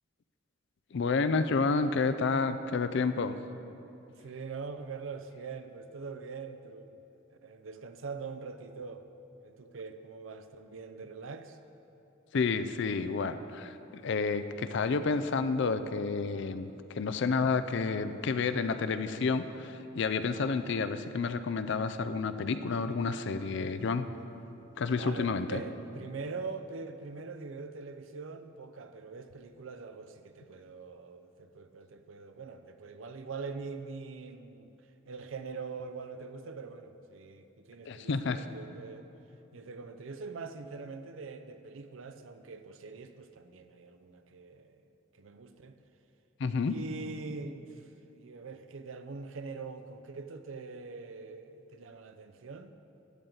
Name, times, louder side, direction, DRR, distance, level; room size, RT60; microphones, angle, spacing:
voice 1, 0.9-3.4 12.3-24.1 24.8-25.6 37.9-38.4 46.4-46.8, left 4 dB, 60° left, 11 dB, 0.4 m, -30 dB
voice 2, 4.2-6.9 7.4-9.0 9.4-11.6 14.5-14.8 25.0-39.1 39.5-44.8 45.1-45.8 46.6-52.7, right 4 dB, 75° right, 9 dB, 0.6 m, -43 dB
12.0 x 9.1 x 3.9 m, 2.9 s
head